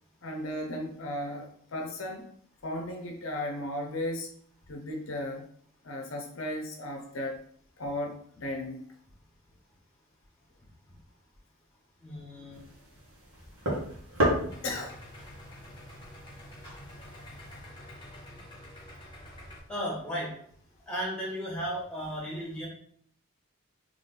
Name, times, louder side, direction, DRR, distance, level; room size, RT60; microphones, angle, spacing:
voice 1, 0.2-2.3 2.6-4.3 4.7-5.4 5.8-7.4 7.8-8.8 14.6-15.0, left 1 dB, 75° left, 2 dB, 0.7 m, -35 dB
voice 2, 12.0-12.6 14.3-14.5 19.7-20.3 20.9-22.7, equal, 5° left, -5 dB, 1.6 m, -35 dB
sound 1, 12.5-17.6, right 1 dB, 90° right, 1.5 m, -34 dB
Idling, 14.5-19.6, left 1 dB, 25° left, 1.3 m, -48 dB
3.9 x 3.2 x 3.9 m, 0.63 s
head